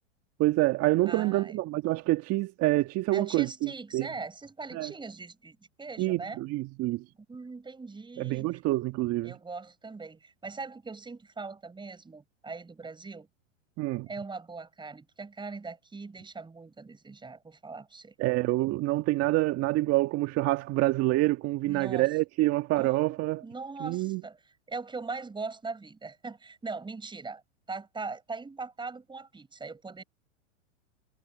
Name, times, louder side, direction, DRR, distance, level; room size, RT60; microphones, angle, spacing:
voice 1, 0.4-4.1 4.7-4.9 6.0-7.0 8.2-9.3 13.8-14.1 18.2-23.4 23.8-24.2, right 18 dB, 40° right, 1.7 m, -27 dB
voice 2, 1.1-1.6 3.1-6.4 7.3-8.6 9.2-13.3 14.1-18.1 21.6-22.1 22.8-27.4 27.7-30.0, right 4 dB, 10° right, 5.8 m, -41 dB
hypercardioid pair, 110°, 39 cm